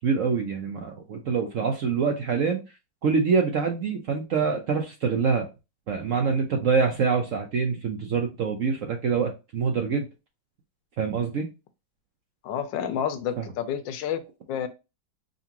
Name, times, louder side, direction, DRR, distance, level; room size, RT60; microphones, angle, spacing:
voice 1, 0.0-2.6 3.0-5.5 5.9-10.1 11.0-11.5 13.4-13.5, right 5 dB, 65° right, 3 dB, 0.8 m, -25 dB
voice 2, 12.4-14.2 14.5-14.7, left 8 dB, 85° left, 10 dB, 1.3 m, -29 dB
5.2 x 2.6 x 2.8 m, 0.27 s
omnidirectional pair, 2.0 m